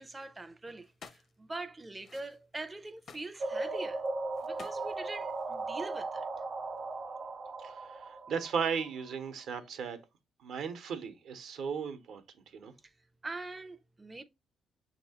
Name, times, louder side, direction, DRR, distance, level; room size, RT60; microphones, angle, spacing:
voice 1, 0.0-4.0 4.4-6.3 12.8-12.9 13.2-14.2, right 2 dB, 20° right, 0.4 m, -43 dB
sound 1, 0.8-1.3 2.0-2.6 3.0-4.1 4.3-5.6, left 5 dB, 50° left, 0.5 m, -52 dB
sound 2, 3.4-9.1, right 3 dB, 45° right, 0.8 m, -37 dB
voice 2, 7.6-10.0 10.4-12.2 12.5-12.7, right 6 dB, 75° right, 0.9 m, -36 dB
6.4 x 2.9 x 2.8 m
cardioid pair, 90°, 0 cm